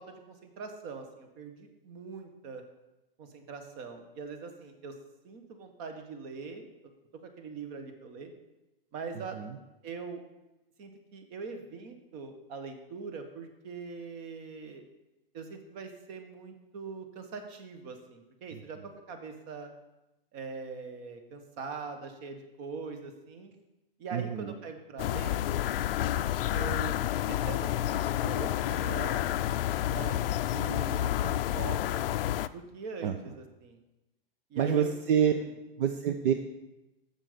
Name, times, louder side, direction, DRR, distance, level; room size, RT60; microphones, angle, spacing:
voice 1, 0.0-2.6 3.2-4.9 5.2-6.9 7.2-8.3 8.9-9.4 9.8-10.2 10.8-14.8 15.3-18.8 19.1-19.7 20.3-23.5 24.0-25.4 26.5-27.0 27.3-29.3 29.9-30.1 30.5-32.0 32.5-33.8 34.5-34.9 35.3-35.5, right 5 dB, 40° right, 6 dB, 1.3 m, -42 dB
voice 2, 24.1-24.5 33.0-33.4 34.6-35.3 35.8-36.3, right 8 dB, 65° right, 6 dB, 0.7 m, -27 dB
sound 1, 25.0-32.5, left 12 dB, 70° left, 0.4 m, -29 dB
7.3 x 7.1 x 5.1 m, 0.98 s
hypercardioid pair, 125°, 29 cm